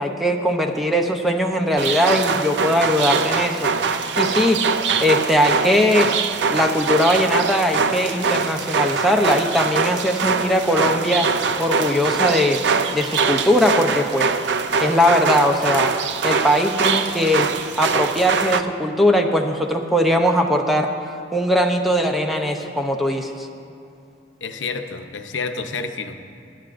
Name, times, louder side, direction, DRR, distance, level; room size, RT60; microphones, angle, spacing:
voice 1, 0.0-4.6 5.0-6.1 6.5-11.3 11.6-12.6 12.9-14.3 14.8-15.9 16.2-17.5 17.8-20.9 21.3-23.5, equal, ahead, 3 dB, 0.6 m, -20 dB
sound 1, 1.8-18.6, right 5 dB, 65° right, 0.5 m, -23 dB
voice 2, 24.4-26.2, left 4 dB, 85° left, 6 dB, 0.7 m, -29 dB
21.5 x 10.5 x 2.5 m, 2.6 s
head